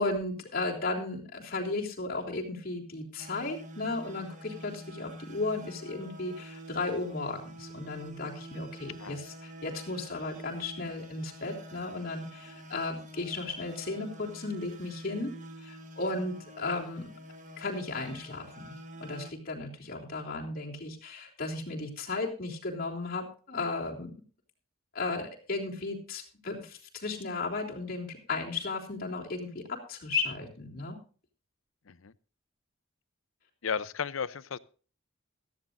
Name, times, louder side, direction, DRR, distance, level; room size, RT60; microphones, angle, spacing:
voice 1, 0.0-15.3 15.6-17.1 17.6-18.7 19.0-24.1 24.9-31.0, left 3 dB, 45° left, 3.4 m, -35 dB
sound 1, 3.2-19.3, right 1 dB, 35° right, 1.6 m, -46 dB
voice 2, 33.6-34.6, left 6 dB, 75° left, 0.6 m, -34 dB
17.0 x 13.5 x 2.6 m
head